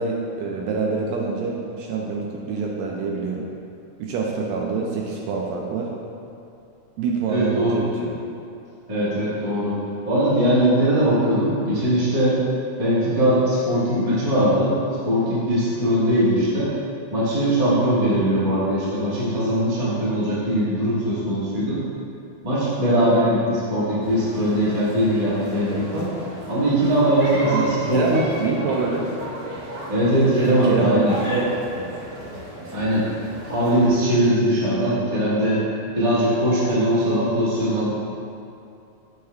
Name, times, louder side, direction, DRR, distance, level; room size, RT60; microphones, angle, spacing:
voice 1, 0.0-3.5 4.0-5.9 7.0-8.2 27.4-29.1 30.6-31.0 31.3-31.6, right 4 dB, 80° right, -1 dB, 1.6 m, -26 dB
voice 2, 7.3-7.8 8.9-9.8 10.1-12.4 12.8-16.7 17.1-21.8 22.4-26.1 26.5-28.2 29.9-31.2 32.7-33.1 33.5-35.7 35.9-37.9, equal, 40° right, -10 dB, 0.5 m, -20 dB
sound 1, 24.0-33.9, right 1 dB, 55° right, 1.7 m, -34 dB
6.8 x 4.4 x 3.3 m, 2.6 s
omnidirectional pair, 3.4 m